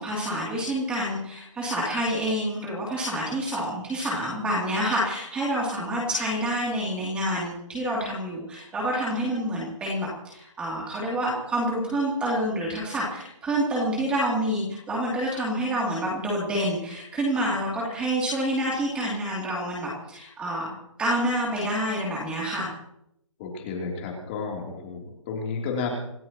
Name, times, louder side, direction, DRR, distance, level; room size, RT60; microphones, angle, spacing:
voice 1, 0.0-20.7 21.0-22.7, right 1 dB, 5° right, -4 dB, 2.9 m, -28 dB
voice 2, 23.4-25.9, left 5 dB, 20° left, -1 dB, 3.4 m, -32 dB
27.0 x 14.5 x 3.1 m, 0.77 s
hypercardioid pair, 170°, 16 cm